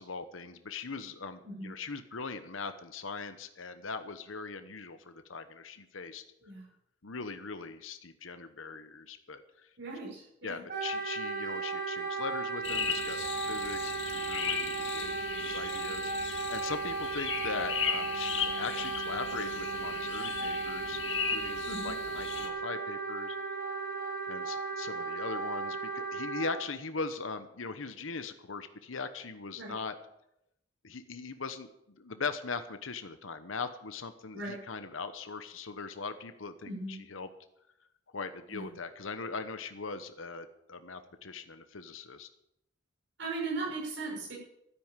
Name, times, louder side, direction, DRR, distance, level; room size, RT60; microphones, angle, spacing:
voice 1, 0.0-6.2 7.0-9.7 10.4-23.4 24.3-30.0 30.8-37.3 38.1-42.3, left 4 dB, 90° left, 9 dB, 1.1 m, -40 dB
voice 2, 9.8-10.6 21.6-21.9 29.6-29.7 34.3-34.6 36.6-36.9 38.5-38.7 43.2-44.3, right 3 dB, 70° right, -5 dB, 6.4 m, -38 dB
Wind instrument woodwind instrument, 10.7-26.6, right 3 dB, 50° right, 6.1 m, -35 dB
sound 1, 12.6-22.5, left 6 dB, 65° left, 2.1 m, -37 dB
13.0 x 9.9 x 7.5 m, 0.81 s
head